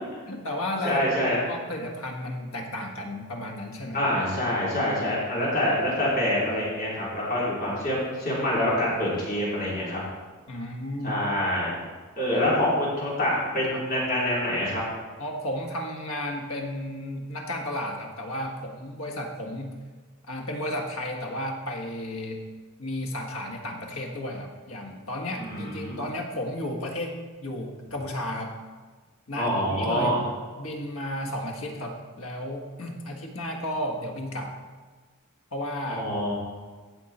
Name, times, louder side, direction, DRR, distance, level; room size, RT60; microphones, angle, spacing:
voice 1, 0.3-4.0 10.5-11.1 13.7-13.8 15.2-19.8 20.3-22.4 22.8-28.5 29.3-30.1 30.6-34.6 35.5-36.1, left 1 dB, 80° left, 2 dB, 1.7 m, -33 dB
voice 2, 0.8-1.4 3.9-10.0 11.0-11.7 12.1-14.8 25.4-26.1 29.3-30.2 35.9-36.3, left 1 dB, 45° left, -7 dB, 3.8 m, -26 dB
16.0 x 6.6 x 4.3 m, 1.4 s
head